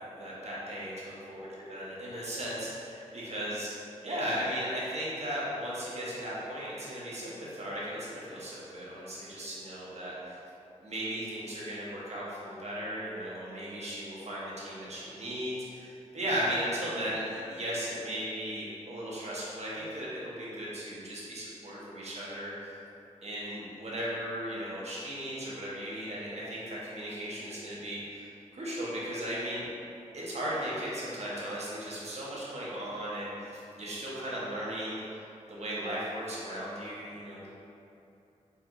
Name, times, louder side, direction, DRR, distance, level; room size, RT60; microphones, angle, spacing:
voice 1, 0.2-3.7 4.0-10.4 10.8-22.8 23.2-29.7 30.1-35.2 35.5-37.5, equal, 55° right, -7 dB, 1.2 m, -36 dB
4.9 x 3.4 x 2.6 m, 2.7 s
cardioid pair, 55°, 13 cm